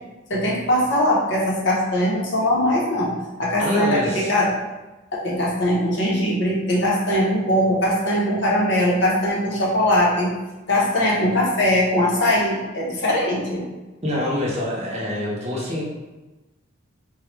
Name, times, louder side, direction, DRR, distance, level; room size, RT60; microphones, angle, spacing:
voice 1, 0.3-4.5 5.1-10.3 10.7-13.7, left 1 dB, 55° left, -3 dB, 0.8 m, -21 dB
voice 2, 3.6-4.3 14.0-15.8, left 1 dB, 30° right, -4 dB, 0.7 m, -25 dB
4.0 x 2.3 x 3.1 m, 1.1 s
head